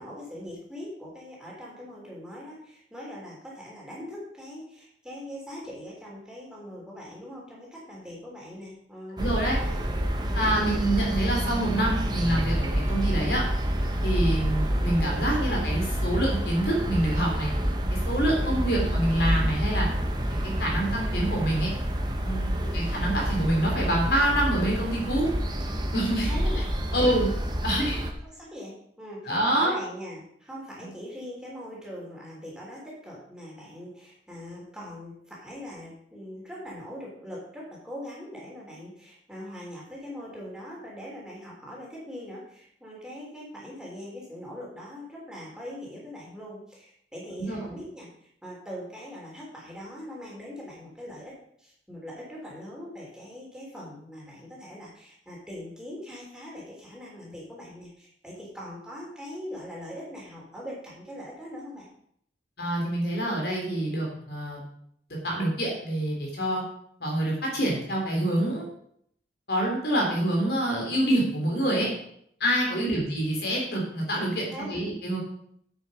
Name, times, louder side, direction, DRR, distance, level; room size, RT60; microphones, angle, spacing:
voice 1, 0.0-9.9 10.3-10.6 18.3-18.6 22.5-22.8 26.2-27.2 28.2-48.1 48.4-61.9 72.8-73.1 74.5-74.8, equal, 5° right, -5 dB, 3.8 m, -41 dB
voice 2, 9.1-9.6 10.3-13.4 14.0-17.5 17.9-19.9 20.4-21.7 22.2-25.3 25.9-26.3 26.9-27.3 27.6-28.0 29.3-29.7 47.3-47.7 62.6-64.6 65.2-66.6 67.0-68.6 69.5-71.9 72.4-75.2, right 1 dB, 65° left, -2 dB, 4.1 m, -26 dB
sound 1, 9.2-28.1, equal, 25° right, 1.2 m, -28 dB
9.7 x 8.3 x 5.2 m, 0.69 s
head